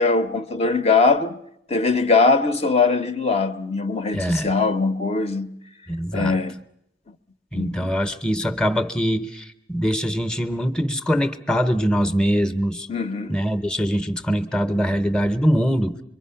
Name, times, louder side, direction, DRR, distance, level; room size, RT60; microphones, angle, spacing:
voice 1, 0.0-1.4 1.7-5.5 6.1-6.6 7.5-7.9 12.9-13.4, left 4 dB, 35° left, 0.7 m, -21 dB
voice 2, 4.1-4.5 5.9-6.4 7.5-12.9 13.3-16.0, equal, 5° left, 0.8 m, -23 dB
25.5 x 23.0 x 5.7 m
head